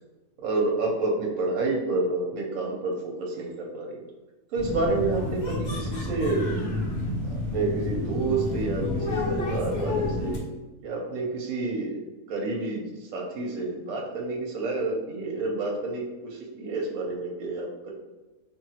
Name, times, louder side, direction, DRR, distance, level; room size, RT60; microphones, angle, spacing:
voice 1, 0.4-4.0 4.5-6.5 7.3-10.4 10.8-17.9, right 3 dB, 70° right, -1 dB, 0.9 m, -29 dB
sound 1, 4.6-10.4, left 2 dB, 55° left, 0.8 m, -30 dB
2.8 x 2.4 x 2.7 m, 1.2 s
omnidirectional pair, 1.5 m